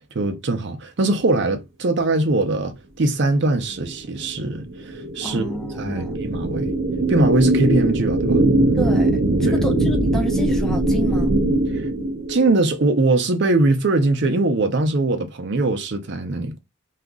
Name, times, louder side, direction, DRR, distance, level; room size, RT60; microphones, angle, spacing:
voice 1, 0.1-5.4 5.8-6.7 7.1-8.4 9.5-9.7 11.7-11.8 12.3-16.6, right 2 dB, 60° right, 0.6 m, -21 dB
sound 1, 3.8-12.6, right 1 dB, 85° right, 0.9 m, -21 dB
voice 2, 5.2-6.3 8.8-11.3, right 1 dB, ahead, 0.5 m, -29 dB
2.8 x 2.4 x 3.6 m
head